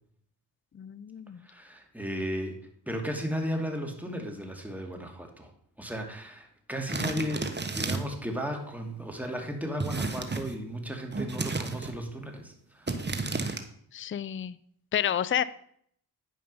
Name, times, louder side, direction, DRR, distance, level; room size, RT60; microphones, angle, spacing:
voice 1, 0.7-1.5 13.9-14.6 14.9-15.4, left 9 dB, 30° left, 17 dB, 0.5 m, -30 dB
voice 2, 1.4-2.6 2.9-5.5 5.8-13.0, equal, 5° right, 2 dB, 2.4 m, -35 dB
sound 1, 6.9-8.2 9.8-10.6 11.1-12.0 12.9-13.6, right 3 dB, 25° right, 1.3 m, -32 dB
10.0 x 5.3 x 5.5 m, 0.65 s
supercardioid pair, 45°, 42 cm